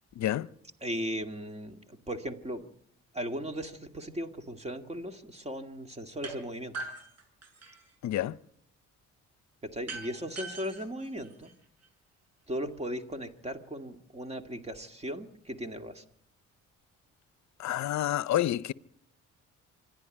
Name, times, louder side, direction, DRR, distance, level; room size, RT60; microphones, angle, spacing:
voice 1, 0.2-0.5 8.0-8.3 17.6-18.7, left 13 dB, 65° left, 0.7 m, -28 dB
voice 2, 0.8-2.6 3.1-6.7 9.6-11.5 12.5-16.0, equal, 20° right, 2.2 m, -37 dB
sound 1, 6.2-6.4 6.7-7.9 9.9-11.9, right 3 dB, 55° right, 6.5 m, -42 dB
26.0 x 11.0 x 9.9 m
cardioid pair, 90°, 30 cm